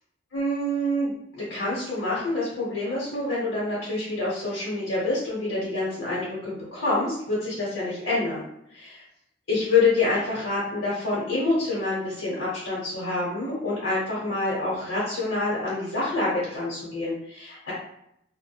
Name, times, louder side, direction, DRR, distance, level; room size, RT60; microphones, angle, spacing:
voice 1, 0.3-8.4 8.7-9.0 9.5-17.7, left 2 dB, 75° left, -8 dB, 0.9 m, -27 dB
2.8 x 2.1 x 2.3 m, 0.75 s
head